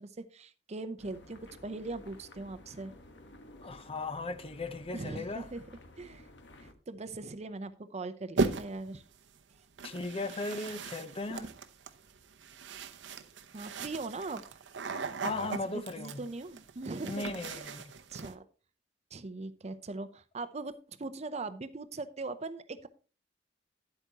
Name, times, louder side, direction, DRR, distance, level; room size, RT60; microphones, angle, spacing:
voice 1, 0.0-2.9 4.9-5.6 6.0-6.2 6.6-9.0 13.5-14.4 15.5-17.7 18.1-18.4 19.1-22.9, right 3 dB, 35° right, 0.6 m, -40 dB
sound 1, 1.0-6.7, left 1 dB, 70° left, 1.3 m, -54 dB
voice 2, 3.6-5.5 9.8-11.5 15.2-16.2 17.0-17.9, left 3 dB, 30° left, 0.7 m, -37 dB
sound 2, 8.4-8.9 9.8-18.3, right 3 dB, 80° right, 0.8 m, -38 dB
10.5 x 8.2 x 2.9 m
head